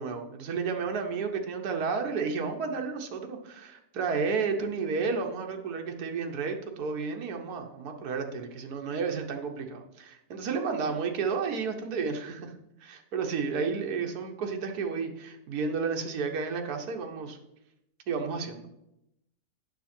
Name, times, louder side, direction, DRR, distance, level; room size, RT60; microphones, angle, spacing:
voice 1, 0.0-12.5 12.8-17.4 18.1-18.7, right 5 dB, 80° right, 4 dB, 1.5 m, -32 dB
9.0 x 5.9 x 4.3 m, 0.84 s
omnidirectional pair, 1.6 m